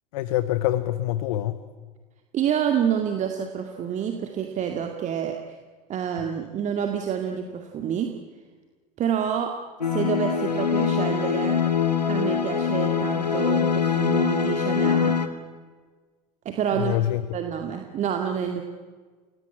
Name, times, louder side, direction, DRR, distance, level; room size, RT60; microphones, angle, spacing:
voice 1, 0.1-1.6 16.7-17.3, left 13 dB, 55° left, 14 dB, 1.0 m, -25 dB
voice 2, 2.3-5.4 5.9-8.1 9.0-9.6 9.9-11.6 12.1-15.2 16.5-17.0 17.3-18.6, right 8 dB, 35° right, 4 dB, 2.1 m, -27 dB
sound 1, 9.8-15.3, left 7 dB, 80° left, 1.6 m, -23 dB
30.0 x 17.5 x 9.7 m, 1.4 s
figure-of-eight pair, 75°, 21 cm